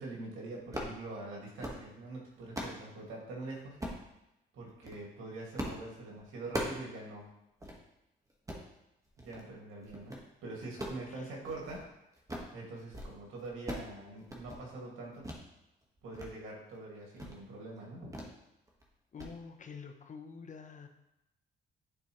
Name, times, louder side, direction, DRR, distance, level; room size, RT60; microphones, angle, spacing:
voice 1, 0.0-3.8 4.5-7.3 9.2-11.8 12.5-15.2 16.0-18.1, right 2 dB, 90° right, -2 dB, 2.1 m, -44 dB
sound 1, 0.7-1.0 1.4-1.8 2.2-2.8 3.8-4.1 4.7-5.0 5.6-5.8 6.1-6.9 7.2-7.3 7.6-7.8 8.3-8.7 9.2-9.5 9.8-10.2 10.6-11.9 12.1-12.5 12.8-13.1 13.4-13.9 14.2-14.6 15.2-15.4 15.8-16.3 16.6-16.8 17.2-17.4 18.1-18.4 18.7-18.9 19.2-19.3, equal, 15° right, 1.4 m, -40 dB
voice 2, 19.1-20.9, left 5 dB, 40° left, 6 dB, 0.8 m, -47 dB
10.0 x 4.2 x 3.1 m, 0.87 s
cardioid pair, 90°, 20 cm